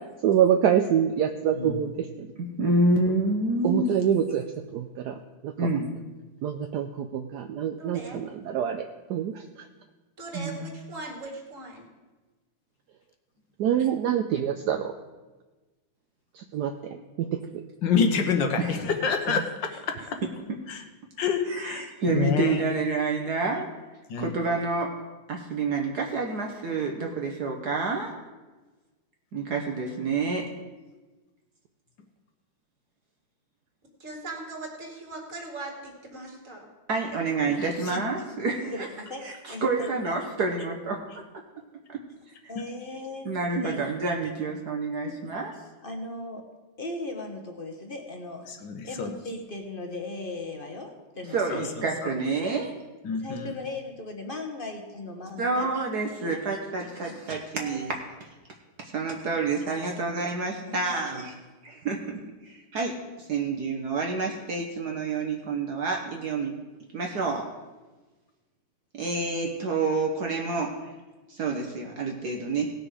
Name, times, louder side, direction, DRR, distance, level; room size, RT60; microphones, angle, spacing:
voice 1, 0.2-2.3 3.6-4.4 4.7-5.7 6.4-8.8 9.1-9.4 13.6-14.9 16.3-16.7 17.2-17.6 37.5-37.6, right 9 dB, 70° right, 6 dB, 1.0 m, -26 dB
voice 2, 2.4-3.9 5.6-5.9 10.3-10.6 18.6-18.7 20.5-20.6 21.5-23.7 24.2-24.9 25.3-28.1 29.3-30.4 36.9-38.7 39.2-41.0 43.2-45.5 51.3-52.7 55.4-58.0 58.8-61.3 61.6-63.0 63.3-66.6 66.9-67.5 68.9-70.8 71.3-72.7, right 3 dB, 55° right, 1 dB, 1.5 m, -28 dB
voice 3, 7.8-8.2 10.2-11.9 34.0-36.7, right 2 dB, 40° right, 1 dB, 2.5 m, -39 dB
voice 4, 17.8-19.7 20.7-20.8 21.2-22.6 24.1-24.3 37.9-38.0 48.5-49.1 51.5-51.6 53.0-53.5, left 5 dB, 65° left, 5 dB, 1.5 m, -27 dB
voice 5, 38.7-40.2 42.5-43.9 45.0-45.4 45.8-46.4 46.8-48.5 48.8-52.5 53.1-55.7 56.2-56.4 56.7-57.2 57.5-57.8 60.6-61.2, left 2 dB, 35° left, 3 dB, 1.0 m, -38 dB
18.0 x 6.2 x 4.9 m, 1.2 s
omnidirectional pair, 2.3 m